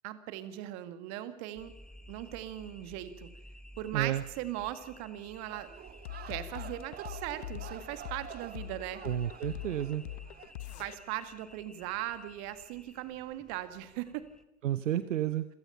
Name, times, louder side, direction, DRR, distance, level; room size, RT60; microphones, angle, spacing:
voice 1, 0.0-1.7 2.1-3.3 3.8-5.7 6.3-9.0 10.8-14.3, right 14 dB, 40° right, 11 dB, 2.0 m, -39 dB
sound 1, 1.6-14.4, equal, ahead, 1.2 m, -54 dB
voice 2, 3.9-4.2 9.0-10.0 14.6-15.5, right 12 dB, 65° right, 14 dB, 1.0 m, -31 dB
sound 2, 5.5-10.5, right 10 dB, 25° right, 1.1 m, -49 dB
sound 3, 6.0-11.0, left 14 dB, 55° left, 1.3 m, -42 dB
27.5 x 17.0 x 5.8 m, 0.85 s
figure-of-eight pair, 100°, 40 cm